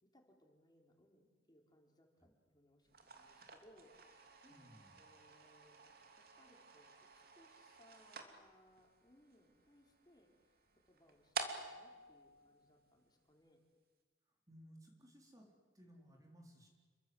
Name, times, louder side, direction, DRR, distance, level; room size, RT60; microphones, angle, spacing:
voice 1, 0.0-5.8 6.2-10.6 10.9-13.6, left 1 dB, 25° left, 2 dB, 4.3 m, -68 dB
sound 1, 2.9-13.2, right 4 dB, 60° right, 2.9 m, -51 dB
voice 2, 4.5-5.0 14.3-16.7, equal, 20° right, 0 dB, 4.1 m, -61 dB
29.0 x 23.0 x 8.0 m, 1.4 s
head